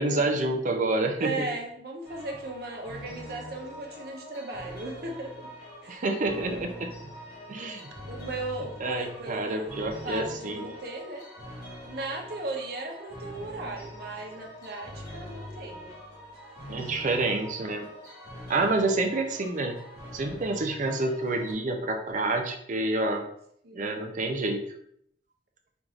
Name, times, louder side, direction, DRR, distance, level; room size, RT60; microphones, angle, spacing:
voice 1, 0.0-1.5 5.9-6.9 7.5-7.9 8.8-10.7 16.7-17.9 18.5-19.8 20.1-23.2 23.7-24.6, right 2 dB, 45° right, 5 dB, 0.6 m, -28 dB
voice 2, 1.2-5.5 5.8-6.0 6.5-6.9 8.1-9.8 10.0-11.3 11.8-15.9 23.6-24.2, right 2 dB, 60° right, 1 dB, 0.9 m, -37 dB
sound 1, 2.0-21.5, equal, 55° left, 1.8 m, -44 dB
4.6 x 2.6 x 3.8 m, 0.68 s
head